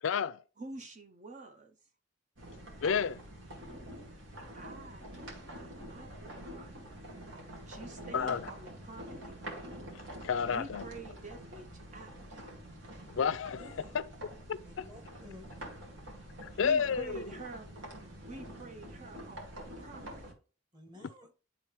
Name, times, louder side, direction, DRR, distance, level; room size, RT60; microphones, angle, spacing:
voice 1, 0.0-0.4 2.8-3.2 8.1-8.5 10.2-10.8 13.1-13.7 14.5-14.9 16.4-17.3, left 6 dB, 90° left, 0.4 m, -31 dB
voice 2, 0.6-1.8 4.5-7.0 7.7-9.4 10.5-12.4 16.4-17.7 18.2-20.4, right 3 dB, 40° right, 0.6 m, -48 dB
sound 1, 2.4-20.3, right 1 dB, 80° right, 2.2 m, -47 dB
voice 3, 13.6-14.0 14.7-15.5 20.7-21.3, left 2 dB, 20° right, 1.6 m, -53 dB
10.5 x 3.7 x 3.1 m
head